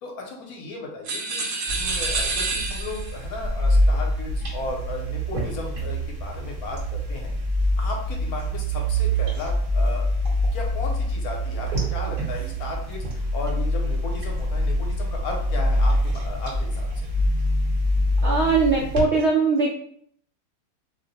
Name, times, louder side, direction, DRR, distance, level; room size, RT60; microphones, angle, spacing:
voice 1, 0.0-1.4 1.7-7.3 7.8-10.1 10.5-16.9, left 2 dB, 70° left, 0 dB, 1.2 m, -35 dB
sound 1, 1.0-3.2, right 3 dB, 65° right, 0.9 m, -28 dB
sound 2, 1.7-19.0, equal, 35° right, 0.9 m, -25 dB
voice 2, 18.2-19.7, right 4 dB, 80° right, -1 dB, 0.6 m, -20 dB
2.9 x 2.0 x 4.0 m, 0.63 s
omnidirectional pair, 1.7 m